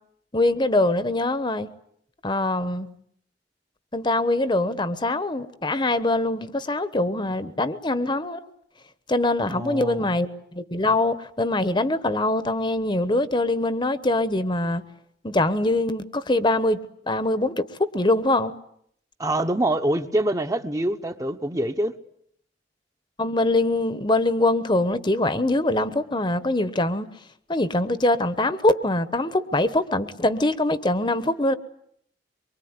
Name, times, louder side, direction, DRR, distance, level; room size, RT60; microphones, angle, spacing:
voice 1, 0.3-1.7 2.2-2.9 3.9-8.5 9.1-14.8 15.2-16.8 17.1-17.5 17.9-18.5 23.2-27.1 27.5-31.5, left 2 dB, 25° left, 13 dB, 1.1 m, -23 dB
voice 2, 9.5-10.1 19.2-21.9, right 1 dB, 20° right, 7 dB, 1.1 m, -25 dB
24.5 x 24.0 x 9.7 m, 0.71 s
head